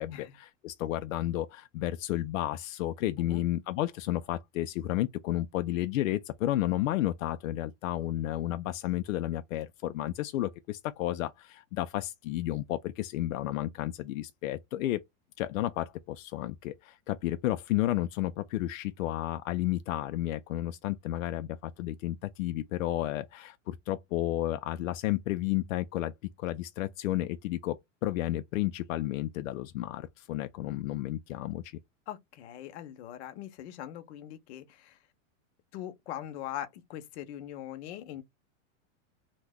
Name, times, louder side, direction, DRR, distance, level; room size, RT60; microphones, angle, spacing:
voice 1, 0.0-15.0 15.4-26.1 26.4-31.8, left 14 dB, 90° left, 0.5 m, -32 dB
voice 2, 32.1-35.0 35.7-38.2, left 12 dB, 55° left, 0.8 m, -41 dB
2.9 x 2.2 x 3.5 m
supercardioid pair, 155°, 38 cm